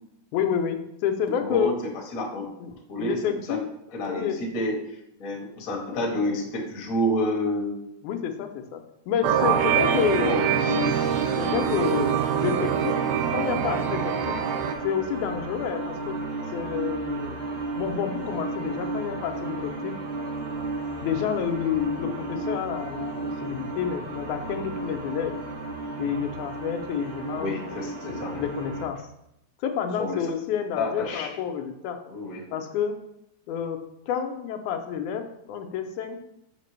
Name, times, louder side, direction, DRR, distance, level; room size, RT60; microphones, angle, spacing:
voice 1, 0.3-1.7 2.6-2.7 3.0-3.6 4.1-4.4 8.0-10.5 11.4-13.0 13.3-14.4 14.8-16.2 16.5-17.4 17.8-19.9 21.0-23.1 23.4-25.3 26.0-27.6 28.0-29.0 29.6-32.0 32.5-32.9 33.5-33.8 34.1-36.2, left 8 dB, 85° left, 6 dB, 2.1 m, -29 dB
voice 2, 1.4-1.8 2.1-3.6 3.9-4.8 5.2-7.8 10.2-11.0 27.4-28.3 30.0-30.2 30.8-31.3 32.1-32.4, left 1 dB, 50° left, -1 dB, 1.0 m, -29 dB
sound 1, 9.2-14.7, right 9 dB, 80° right, 1.9 m, -24 dB
sound 2, 9.8-28.8, right 2 dB, 65° right, 2.8 m, -34 dB
6.5 x 5.9 x 3.2 m, 0.81 s
omnidirectional pair, 3.5 m